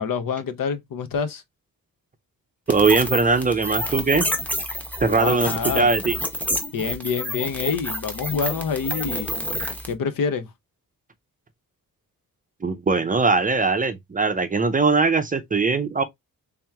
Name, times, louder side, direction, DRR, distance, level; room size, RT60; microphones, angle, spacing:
voice 1, 0.0-1.4 5.1-5.9 6.7-9.4 9.9-10.5, left 6 dB, 65° left, 0.8 m, -26 dB
sound 1, 2.7-9.9, equal, 5° left, 0.8 m, -29 dB
voice 2, 2.7-4.3 5.0-6.1 12.6-16.0, right 4 dB, 25° right, 0.5 m, -20 dB
3.5 x 3.0 x 3.4 m
wide cardioid pair, 160°, 35 cm